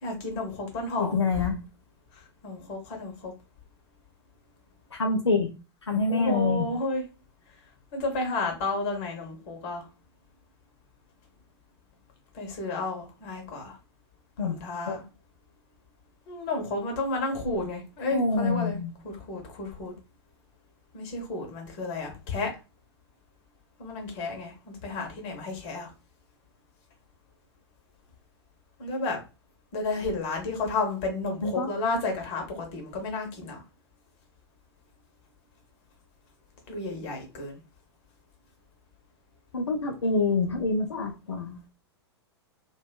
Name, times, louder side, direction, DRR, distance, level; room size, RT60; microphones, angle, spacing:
voice 1, 0.0-1.5 2.1-3.3 6.1-7.0 7.9-9.9 12.3-13.8 14.4-15.0 16.3-18.8 19.0-19.9 20.9-22.5 23.8-25.9 28.8-29.2 29.7-33.6 36.7-37.6, left 2 dB, 35° left, 2 dB, 0.8 m, -32 dB
voice 2, 1.0-1.6 4.9-5.5 5.9-6.6 14.4-14.6 14.9-15.0 18.1-18.9 31.4-31.7 39.5-41.6, left 3 dB, 80° left, 3 dB, 0.4 m, -26 dB
2.5 x 2.2 x 2.2 m, 0.30 s
figure-of-eight pair, 100°, 14 cm